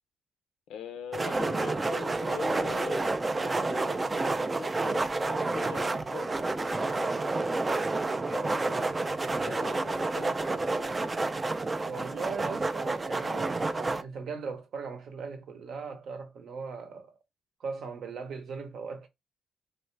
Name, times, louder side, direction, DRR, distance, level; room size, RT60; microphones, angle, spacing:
voice 1, 0.7-7.7 8.3-11.1, left 7 dB, 80° left, 0.5 m, -44 dB
sound 1, 1.1-14.0, right 3 dB, 25° right, 0.3 m, -29 dB
voice 2, 11.8-17.1 17.6-19.1, right 5 dB, 65° right, 0.8 m, -39 dB
3.2 x 2.4 x 3.2 m
cardioid pair, 90°, 0 cm